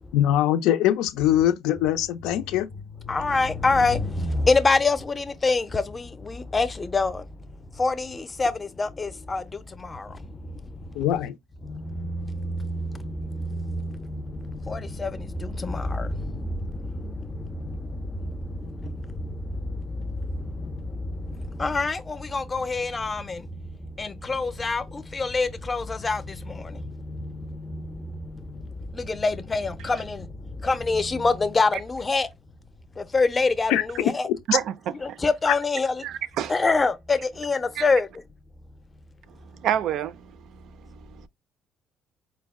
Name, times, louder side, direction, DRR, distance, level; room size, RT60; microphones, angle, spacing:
voice 1, 0.1-2.7 11.0-11.4 33.7-33.8, left 12 dB, 90° left, 0.5 m, -22 dB
voice 2, 3.1-7.3 7.7-11.1 11.6-32.3 33.0-34.3 35.0-36.0 36.5-38.1, left 3 dB, 20° left, 0.5 m, -27 dB
voice 3, 34.5-35.2 36.0-36.5 37.8-37.9 39.5-41.3, right 10 dB, 65° right, 0.3 m, -29 dB
4.5 x 2.1 x 3.5 m
cardioid pair, 120°, 0 cm